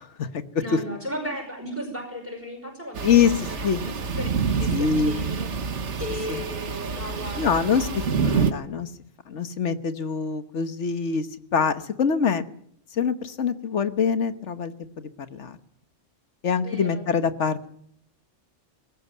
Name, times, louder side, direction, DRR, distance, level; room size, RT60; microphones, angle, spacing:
voice 1, 0.0-0.8 3.0-3.8 4.7-5.1 6.3-6.4 7.4-8.9 9.3-12.4 12.9-15.6 16.4-17.7, left 6 dB, 70° left, 11 dB, 1.5 m, -25 dB
voice 2, 0.6-5.5 6.0-8.2 16.6-17.0, equal, 10° right, 0 dB, 5.3 m, -36 dB
sound 1, 2.9-8.5, right 5 dB, 70° right, 1.5 m, -27 dB
20.5 x 17.0 x 9.3 m, 0.68 s
omnidirectional pair, 1.3 m